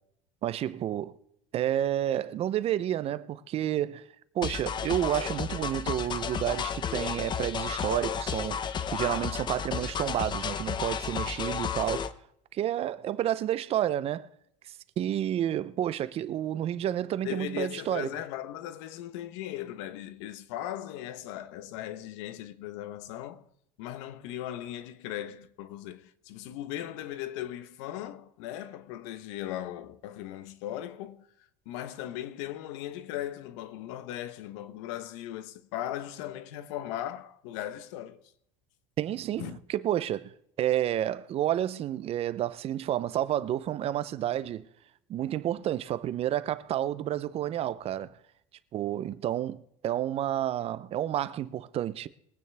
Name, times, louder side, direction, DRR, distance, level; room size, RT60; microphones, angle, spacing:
voice 1, 0.4-1.1 1.5-4.0 4.3-8.6 8.9-12.1 12.5-14.3 15.0-18.1 39.0-40.3 40.6-44.6 45.1-48.1 48.7-52.1, right 12 dB, 40° right, 0.7 m, -30 dB
sound 1, 4.4-12.1, left 7 dB, 30° left, 0.7 m, -32 dB
voice 2, 17.2-23.4 23.8-31.3 31.7-38.2 39.4-39.6, left 12 dB, 80° left, 1.0 m, -38 dB
22.5 x 9.3 x 3.5 m
supercardioid pair, 120°, 15 cm